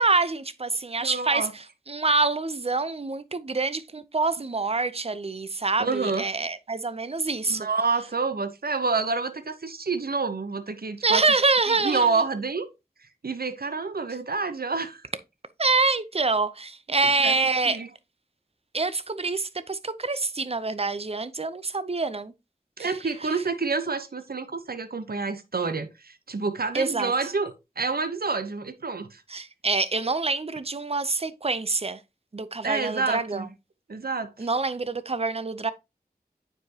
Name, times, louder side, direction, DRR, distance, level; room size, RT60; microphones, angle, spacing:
voice 1, 0.0-1.5 1.9-7.7 11.0-12.1 15.6-17.8 18.7-22.3 22.8-22.9 26.7-27.1 29.3-32.0 32.3-33.5 34.4-35.7, right 3 dB, 40° right, 0.6 m, -26 dB
voice 2, 1.0-1.5 5.8-6.3 7.5-11.2 11.7-12.7 13.2-15.0 17.2-17.4 17.7-17.9 22.8-29.2 32.6-33.5 33.9-34.5, right 4 dB, 70° right, 0.8 m, -28 dB
8.9 x 4.8 x 2.8 m
wide cardioid pair, 40°, 16 cm